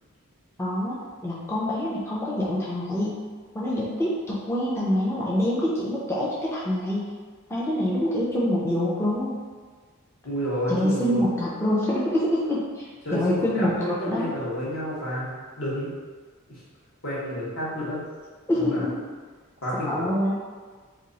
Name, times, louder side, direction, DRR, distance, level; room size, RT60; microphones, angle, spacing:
voice 1, 0.6-3.1 3.5-7.1 7.5-9.3 10.7-14.3 18.5-19.0 19.9-20.3, left 1 dB, 10° left, -7 dB, 0.4 m, -26 dB
voice 2, 10.2-11.2 13.0-15.9 16.5-16.6 17.0-18.0 18.6-18.9 19.6-20.1, equal, 65° left, -8 dB, 1.2 m, -30 dB
2.9 x 2.3 x 3.9 m, 1.5 s
head